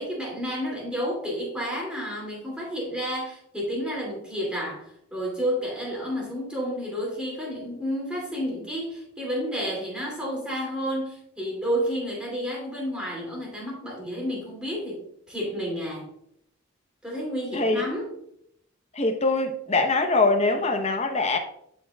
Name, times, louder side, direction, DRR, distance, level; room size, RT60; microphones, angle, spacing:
voice 1, 0.0-16.1 17.0-18.1, equal, 5° right, 2.4 m, -31 dB
voice 2, 18.9-21.4, left 3 dB, 30° left, 0.8 m, -23 dB
12.5 x 4.6 x 2.3 m
head